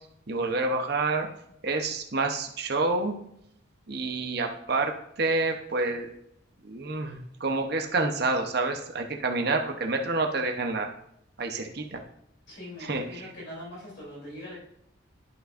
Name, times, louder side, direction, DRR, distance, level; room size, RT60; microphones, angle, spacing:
voice 1, 0.3-1.3 1.6-3.1 3.9-6.1 6.6-10.9 11.4-12.0 12.8-13.3, right 3 dB, 50° right, 4 dB, 0.8 m, -28 dB
voice 2, 12.5-14.5, left 1 dB, 60° left, -6 dB, 3.0 m, -42 dB
11.5 x 5.4 x 2.5 m, 0.75 s
head